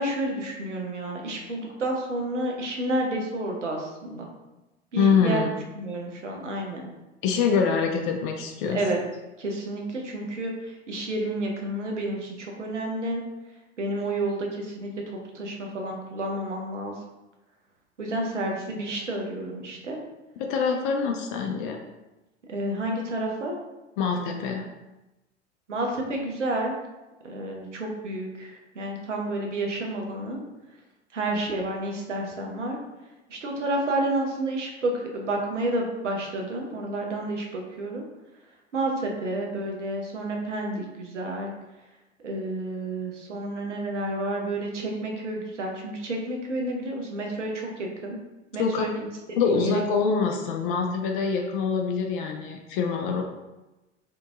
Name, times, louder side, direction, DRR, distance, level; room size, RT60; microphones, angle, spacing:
voice 1, 0.0-4.3 4.9-5.4 5.7-6.8 8.7-9.0 9.4-13.2 13.8-14.9 15.3-16.9 18.0-20.0 22.5-23.6 25.7-26.8 27.2-30.4 31.1-32.8 33.3-38.0 38.7-41.5 42.2-48.2 48.5-49.8, right 1 dB, 85° right, 0 dB, 0.7 m, -30 dB
voice 2, 4.9-5.5 7.2-8.8 20.4-21.8 24.0-24.6 48.6-48.8 49.4-53.2, left 5 dB, 50° left, 2 dB, 0.5 m, -25 dB
2.8 x 2.6 x 3.5 m, 1.0 s
figure-of-eight pair, 80°, 35 cm